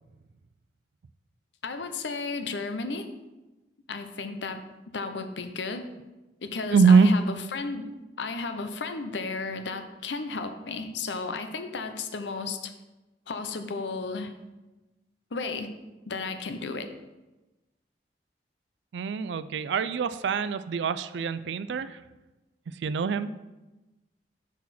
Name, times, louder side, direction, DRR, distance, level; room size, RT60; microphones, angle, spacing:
voice 1, 1.6-3.1 3.9-4.6 4.9-5.9 6.4-7.9 8.2-12.7 13.3-14.3 15.3-15.7 16.1-16.9, left 4 dB, 85° left, 8 dB, 0.7 m, -33 dB
voice 2, 6.7-7.1 18.9-22.0 22.8-23.3, right 5 dB, 80° right, 14 dB, 0.4 m, -23 dB
6.2 x 5.7 x 4.2 m, 1.1 s
head